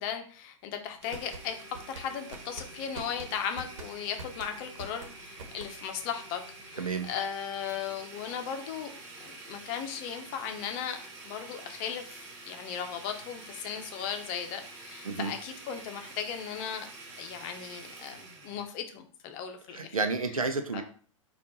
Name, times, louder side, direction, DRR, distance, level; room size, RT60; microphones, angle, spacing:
voice 1, 0.0-1.5 1.9-11.0 11.2-16.9 17.2-20.0 20.7-20.8, left 8 dB, 40° left, 6 dB, 0.8 m, -37 dB
sound 1, 0.9-6.1, right 3 dB, 60° right, 1.2 m, -45 dB
Domestic sounds home sounds, 1.0-18.6, right 2 dB, 40° right, 1.5 m, -47 dB
voice 2, 6.8-7.1 15.0-15.3 19.7-20.8, right 4 dB, 90° right, 7 dB, 0.7 m, -31 dB
4.4 x 2.5 x 3.9 m, 0.43 s
figure-of-eight pair, 105°, 17 cm